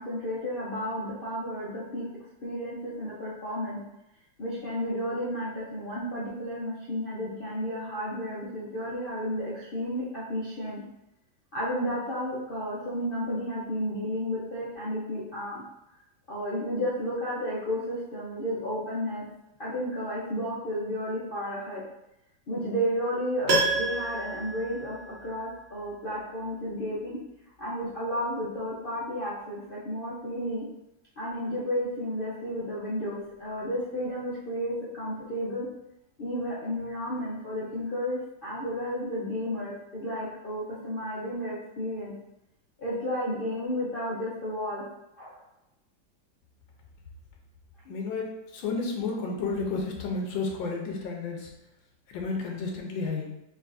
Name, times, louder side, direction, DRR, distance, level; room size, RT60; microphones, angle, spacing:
voice 1, 0.0-2.0 2.4-3.8 4.4-10.8 11.5-15.6 16.3-19.2 19.6-21.8 22.5-27.2 27.6-30.7 31.2-35.7 36.2-42.1 42.8-44.8 45.2-45.4, equal, 65° left, -8 dB, 0.5 m, -32 dB
Piano, 23.5-25.6 25.8-25.9, right 2 dB, 55° right, 0.7 m, -29 dB
voice 2, 47.8-51.5 52.1-53.3, left 4 dB, 85° left, 0 dB, 1.4 m, -32 dB
5.0 x 3.3 x 2.5 m, 0.87 s
omnidirectional pair, 2.1 m